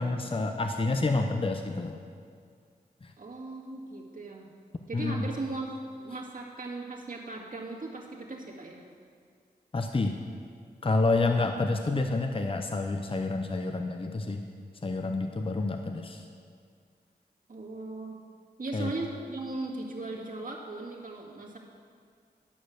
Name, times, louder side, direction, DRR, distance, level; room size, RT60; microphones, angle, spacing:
voice 1, 0.0-2.0 3.0-3.1 4.9-5.3 9.7-10.2 10.8-14.4 14.8-16.2 18.7-18.9, left 3 dB, 30° left, 5 dB, 0.7 m, -28 dB
voice 2, 3.2-4.5 4.9-5.7 6.0-8.8 17.5-18.1 18.6-21.6, right 2 dB, 50° right, -2 dB, 2.0 m, -38 dB
12.0 x 6.3 x 6.4 m, 2.1 s
cardioid pair, 45°, 18 cm